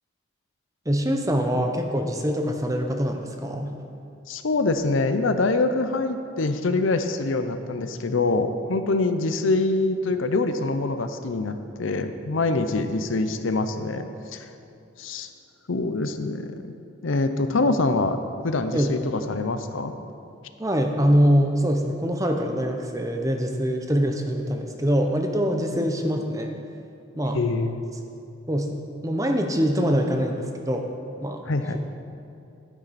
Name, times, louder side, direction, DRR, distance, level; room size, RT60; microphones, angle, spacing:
voice 1, 0.9-3.7 17.7-17.8 18.7-18.9 20.6-26.5 27.2-27.4 28.5-28.7 29.0-30.9 31.2-31.4, equal, 15° right, 4 dB, 0.7 m, -24 dB
voice 2, 4.3-14.1 14.3-14.4 15.0-15.3 15.7-16.7 17.0-18.2 18.4-19.9 27.3-27.8 31.5-31.8, left 3 dB, 75° left, 9 dB, 0.7 m, -25 dB
12.0 x 10.0 x 4.2 m, 2.7 s
head